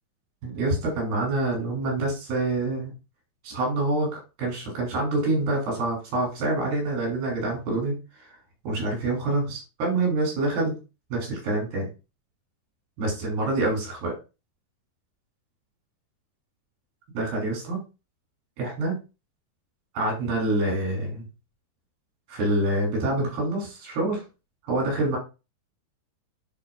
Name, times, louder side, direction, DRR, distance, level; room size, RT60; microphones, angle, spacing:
voice 1, 0.4-2.9 3.4-8.0 8.7-10.7 11.1-11.9 13.0-14.1 17.2-17.8 18.6-19.0 20.0-21.2 22.3-24.2 24.7-25.2, right 2 dB, 80° right, -1 dB, 5.1 m, -26 dB
10.5 x 4.4 x 2.5 m, 0.29 s
omnidirectional pair, 4.2 m